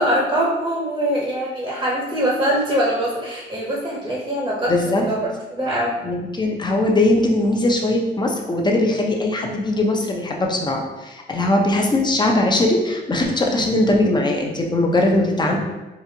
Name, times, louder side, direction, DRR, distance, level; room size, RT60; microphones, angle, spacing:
voice 1, 0.0-6.0, equal, 15° right, -3 dB, 0.8 m, -23 dB
voice 2, 4.7-5.0 6.0-15.6, left 2 dB, 20° left, 1 dB, 0.6 m, -20 dB
4.1 x 2.5 x 2.8 m, 1.1 s
cardioid pair, 90°, 20 cm